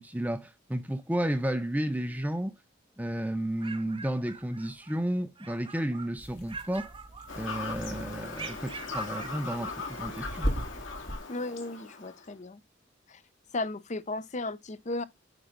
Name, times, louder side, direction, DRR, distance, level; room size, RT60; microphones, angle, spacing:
voice 1, 0.0-2.5 3.0-6.9 7.4-10.5, right 1 dB, 10° right, 0.6 m, -32 dB
sound 1, 3.4-5.0 5.4-6.2 6.5-7.7 8.3-9.4, right 5 dB, 25° right, 1.0 m, -45 dB
sound 2, 6.2-11.2, equal, 55° left, 2.6 m, -38 dB
Fowl / Bird vocalization bird call bird song, 7.3-12.3, left 3 dB, 90° left, 2.4 m, -39 dB
voice 2, 11.3-12.6 13.1-13.2 13.5-15.0, left 2 dB, 40° left, 0.7 m, -35 dB
8.9 x 3.7 x 5.1 m
head